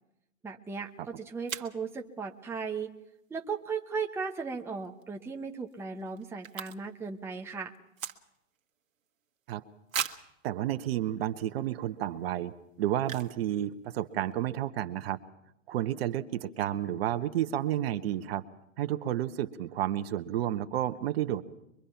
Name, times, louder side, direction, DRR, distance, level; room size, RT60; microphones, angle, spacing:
voice 1, 0.4-2.9 3.3-7.7, right 5 dB, 5° right, 2 dB, 1.0 m, -36 dB
sound 1, 0.8-0.9 1.5-1.8 4.8-5.0 5.3-5.4 5.6-7.1 7.3-8.6 9.1-9.2 9.9-10.4 11.0-11.1 11.6-11.8 13.0-13.4 13.7-13.8 14.0-14.3, right 8 dB, 75° right, 1.5 m, -38 dB
voice 2, 10.4-12.5 12.8-15.2 15.7-18.4 18.8-21.4, right 12 dB, 45° right, 11 dB, 1.2 m, -31 dB
23.5 x 23.5 x 5.8 m, 0.84 s
hypercardioid pair, 130°, 40 cm